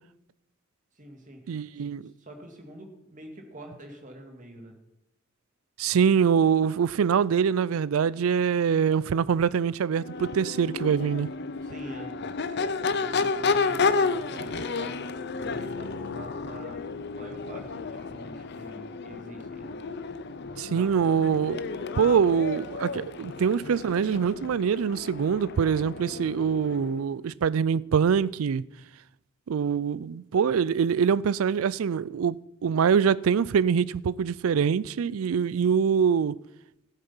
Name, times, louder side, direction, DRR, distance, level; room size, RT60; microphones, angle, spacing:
voice 1, 0.9-4.7 11.6-12.2 12.9-16.8 17.1-19.7 20.6-20.9 22.0-22.1, right 1 dB, 40° right, 2.1 m, -46 dB
voice 2, 1.5-2.0 5.8-11.3 20.6-21.6 22.0-28.6 29.5-36.4, right 7 dB, 90° right, 0.4 m, -24 dB
Crowd / Race car auto racing / Accelerating revving vroom, 9.9-27.0, left 4 dB, 55° left, 0.6 m, -32 dB
14.0 x 8.2 x 5.6 m
head